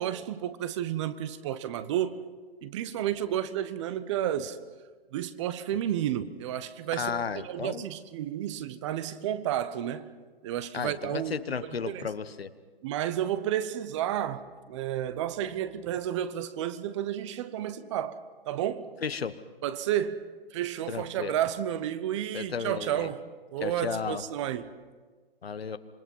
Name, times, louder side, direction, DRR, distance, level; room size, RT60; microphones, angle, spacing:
voice 1, 0.0-2.2 2.6-4.6 5.1-7.1 7.4-10.1 10.4-12.1 12.8-18.2 18.5-18.9 19.6-20.2 20.5-23.2 23.5-24.7, right 11 dB, 30° right, 0.9 m, -31 dB
voice 2, 6.9-7.8 10.7-12.5 19.0-19.4 20.9-21.3 22.3-23.1 23.6-24.2 25.4-25.8, left 6 dB, 80° left, 1.3 m, -33 dB
26.5 x 21.0 x 5.5 m
hypercardioid pair, 140°, 30 cm